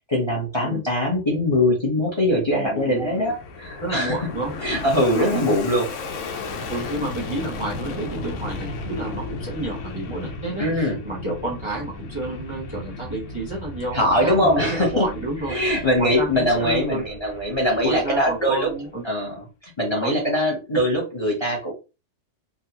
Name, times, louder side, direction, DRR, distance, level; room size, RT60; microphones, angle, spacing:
voice 1, 0.0-4.2 4.6-5.8 10.6-11.0 13.9-15.1 15.5-18.7 19.0-21.7, left 1 dB, 25° left, -1 dB, 0.9 m, -22 dB
Fixed-wing aircraft airplane, 2.4-19.1, left 3 dB, 75° left, 1.0 m, -35 dB
voice 2, 2.5-3.3 3.8-4.5 5.1-5.6 6.7-15.5 16.0-17.0 17.8-19.0 20.0-20.2, right 2 dB, 25° right, -2 dB, 0.8 m, -30 dB
3.7 x 2.2 x 2.8 m, 0.29 s
omnidirectional pair, 1.3 m